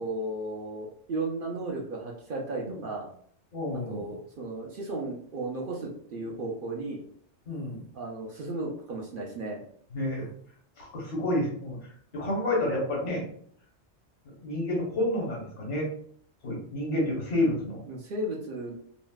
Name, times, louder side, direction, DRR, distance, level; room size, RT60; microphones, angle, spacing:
voice 1, 0.0-3.1 3.7-7.0 7.9-9.6 17.9-18.7, right 2 dB, 55° right, -1 dB, 0.7 m, -35 dB
voice 2, 3.5-4.1 7.5-7.8 9.9-10.3 10.8-13.2 14.2-15.9 16.4-17.8, left 1 dB, 80° left, -2 dB, 1.3 m, -30 dB
3.9 x 2.1 x 2.2 m, 0.62 s
omnidirectional pair, 1.2 m